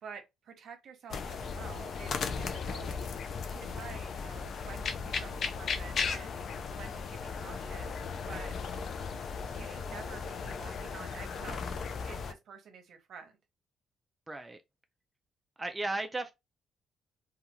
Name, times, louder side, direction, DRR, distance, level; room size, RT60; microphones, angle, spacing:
voice 1, 0.0-3.0 3.5-6.4 6.8-7.9 8.3-8.5 9.5-11.8 12.1-13.3, right 6 dB, 65° right, 0.8 m, -49 dB
sound 1, 1.1-12.3, left 5 dB, 55° left, 0.4 m, -36 dB
voice 2, 14.3-14.6 15.6-16.3, right 2 dB, 15° right, 0.3 m, -35 dB
2.5 x 2.3 x 2.8 m
cardioid pair, 90°, 0 cm